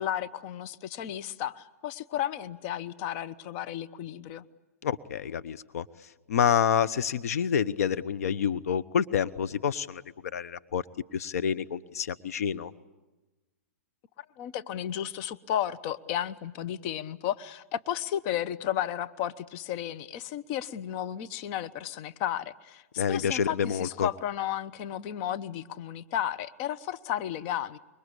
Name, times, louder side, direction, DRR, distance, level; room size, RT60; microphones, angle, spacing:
voice 1, 0.0-4.4 14.2-27.8, left 11 dB, 45° left, 14 dB, 0.9 m, -33 dB
voice 2, 4.8-5.8 6.3-10.0 10.3-10.8 11.1-12.7 23.0-24.1, left 8 dB, 70° left, 13 dB, 1.0 m, -28 dB
26.0 x 23.5 x 8.4 m, 1.1 s
hypercardioid pair, 120°, 9 cm